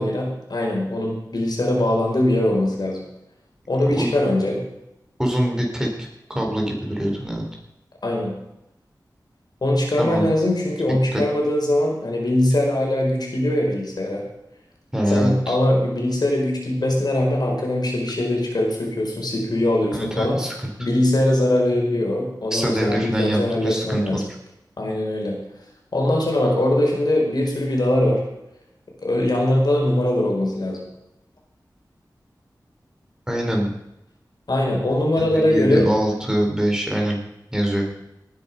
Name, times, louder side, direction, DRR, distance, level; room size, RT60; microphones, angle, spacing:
voice 1, 0.0-3.0 3.7-4.6 8.0-8.4 9.6-14.2 15.1-20.4 20.8-24.2 24.8-25.4 25.9-28.2 29.0-30.8 34.5-35.9, left 1 dB, 65° left, 0 dB, 4.8 m, -21 dB
voice 2, 5.2-5.9 6.3-7.4 10.0-10.3 11.1-11.2 14.9-15.6 19.9-20.9 22.5-24.2 33.3-33.7 35.2-37.2 37.5-37.9, equal, 10° right, 0 dB, 4.3 m, -23 dB
18.5 x 9.9 x 5.5 m, 0.86 s
wide cardioid pair, 80°, 7 cm